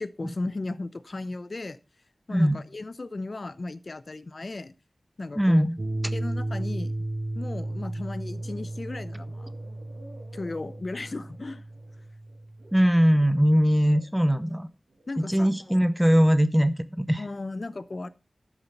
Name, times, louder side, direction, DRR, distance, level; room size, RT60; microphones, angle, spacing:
voice 1, 0.0-1.8 2.3-4.7 5.2-5.6 6.1-6.9 7.3-9.5 10.3-11.6 15.1-15.8 17.2-18.1, left 2 dB, 55° left, 0.7 m, -35 dB
voice 2, 5.4-5.8 12.7-14.7 15.3-17.2, equal, 5° right, 0.9 m, -21 dB
sound 1, 5.8-12.8, right 1 dB, 45° right, 2.4 m, -34 dB
sound 2, 7.5-13.4 13.8-15.6 16.0-16.4, right 1 dB, 85° right, 5.0 m, -53 dB
12.5 x 7.2 x 5.4 m
wide cardioid pair, 70°, 0 cm